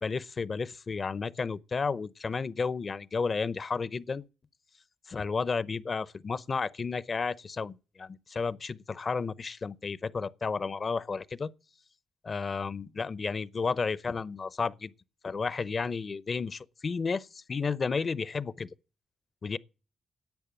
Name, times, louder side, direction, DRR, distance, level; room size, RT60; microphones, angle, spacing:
voice 1, 0.0-4.2 5.1-11.5 12.2-14.9 15.2-18.7 19.4-19.6, left 5 dB, 50° left, 0.7 m, -32 dB
10.5 x 8.1 x 9.0 m
cardioid pair, 60°, 0 cm